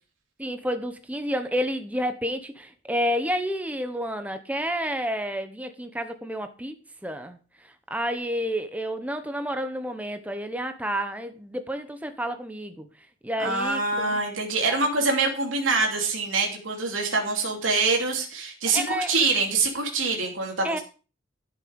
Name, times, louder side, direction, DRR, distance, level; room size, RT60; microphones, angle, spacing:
voice 1, 0.4-6.8 7.0-7.4 7.9-12.9 13.2-14.2 18.7-19.1 20.6-20.8, equal, 10° right, 8 dB, 0.9 m, -30 dB
voice 2, 13.4-20.8, right 3 dB, 90° right, 1 dB, 2.9 m, -25 dB
12.5 x 6.9 x 5.2 m, 0.35 s
head